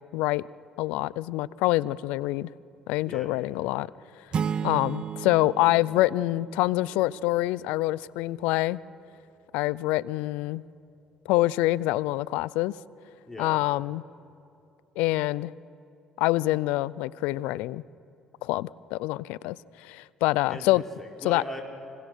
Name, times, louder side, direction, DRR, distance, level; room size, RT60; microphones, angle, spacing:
voice 1, 0.1-0.4 0.8-2.5 2.9-3.9 4.6-8.8 9.5-10.6 11.3-12.7 13.4-14.0 15.0-15.5 16.2-17.8 18.4-20.8 21.2-21.4, left 18 dB, 85° left, 21 dB, 0.4 m, -26 dB
sound 1, 4.3-7.1, right 7 dB, 50° right, 0.7 m, -33 dB
voice 2, 20.5-21.6, left 1 dB, 15° left, 0 dB, 4.8 m, -39 dB
26.0 x 20.5 x 6.3 m, 2.5 s
supercardioid pair, 65°, 2 cm